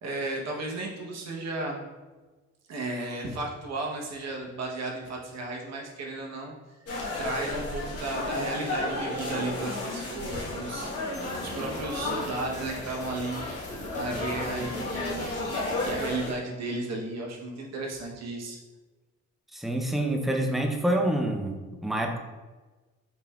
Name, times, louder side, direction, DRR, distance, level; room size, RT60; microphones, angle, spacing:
voice 1, 0.0-1.8 2.7-6.5 7.2-10.9 11.4-13.5 13.9-18.6, right 2 dB, 60° right, -1 dB, 1.0 m, -34 dB
sound 1, 6.9-16.3, left 2 dB, 50° left, 1.4 m, -33 dB
sound 2, 11.1-16.1, left 1 dB, 25° left, 1.0 m, -42 dB
voice 2, 19.5-22.2, right 1 dB, ahead, 3 dB, 0.5 m, -27 dB
5.8 x 3.2 x 2.4 m, 1.2 s
cardioid pair, 90°, 30 cm